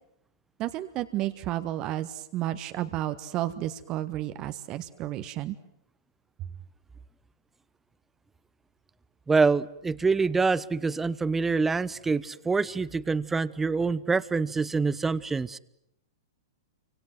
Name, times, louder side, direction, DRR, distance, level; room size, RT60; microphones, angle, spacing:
voice 1, 0.6-5.6, right 14 dB, 35° right, 10 dB, 1.5 m, -32 dB
voice 2, 9.3-15.6, right 4 dB, 10° right, 17 dB, 1.0 m, -26 dB
29.0 x 25.5 x 7.7 m, 0.78 s
hypercardioid pair, 110°, 2 cm